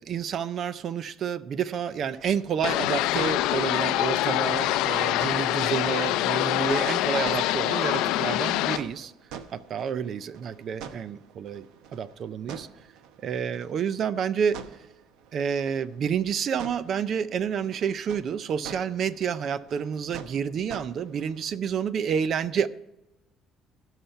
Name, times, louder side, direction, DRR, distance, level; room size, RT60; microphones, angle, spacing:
voice 1, 0.0-9.1 9.5-12.7 13.2-14.6 15.3-22.7, right 7 dB, 40° right, 0.4 m, -29 dB
sound 1, 1.8-21.6, right 7 dB, 80° right, 0.9 m, -47 dB
sound 2, 2.6-8.8, left 15 dB, 85° left, 0.4 m, -25 dB
17.0 x 5.8 x 5.5 m
cardioid pair, 170°, 0 cm